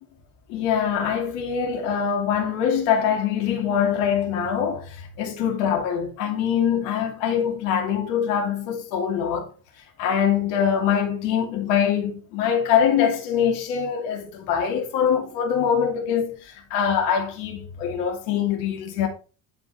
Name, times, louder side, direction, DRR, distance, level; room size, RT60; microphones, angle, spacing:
voice 1, 0.5-9.5 10.0-19.1, left 8 dB, 85° left, 2.7 m, -23 dB
11.0 x 5.0 x 4.2 m
supercardioid pair, 70°, 47 cm